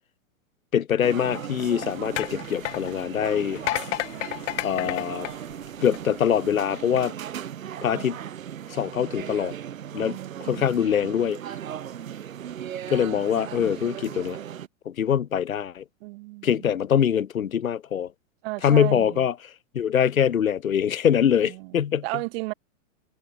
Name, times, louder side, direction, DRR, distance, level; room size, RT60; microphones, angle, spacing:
voice 1, 0.7-3.6 4.6-5.3 5.8-7.1 7.8-8.2 8.7-9.5 9.9-11.4 12.9-14.4 14.9-15.8 16.4-18.1 18.6-19.3 19.7-22.0, left 9 dB, 90° left, 2.8 m, -23 dB
sound 1, 1.0-14.7, right 10 dB, 80° right, 7.3 m, -37 dB
sound 2, 1.3-6.2 6.8-7.0, left 15 dB, 65° left, 1.5 m, -33 dB
voice 2, 10.1-10.9 16.0-16.7 18.4-19.2 21.4-22.5, right 25 dB, 50° right, 1.8 m, -35 dB
hypercardioid pair, 125°, 40 cm